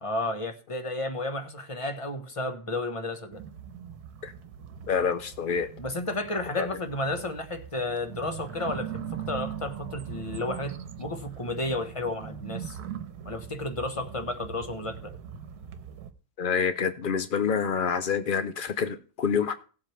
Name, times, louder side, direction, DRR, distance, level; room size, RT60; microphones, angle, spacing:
voice 1, 0.0-3.4 5.8-12.8 13.2-15.2, left 2 dB, 20° left, 1.1 m, -32 dB
sound 1, 3.3-16.1, right 8 dB, 70° right, 1.4 m, -41 dB
voice 2, 4.9-5.7 6.6-6.7 16.4-19.5, left 6 dB, 75° left, 0.4 m, -27 dB
18.5 x 7.5 x 3.3 m
omnidirectional pair, 1.7 m